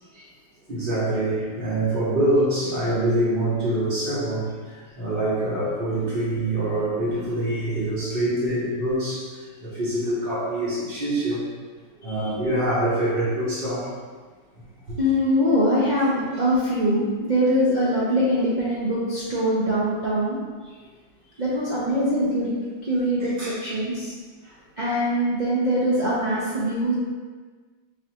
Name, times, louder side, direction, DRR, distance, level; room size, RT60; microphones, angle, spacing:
voice 1, 0.7-9.3 9.6-11.4 12.0-13.9 14.9-15.0 23.4-23.5, right 1 dB, 45° right, -10 dB, 0.8 m, -25 dB
voice 2, 15.0-20.4 21.4-22.5 22.8-24.1 24.8-26.9, equal, 80° right, -8 dB, 0.4 m, -23 dB
5.4 x 2.5 x 2.8 m, 1.4 s
omnidirectional pair, 1.9 m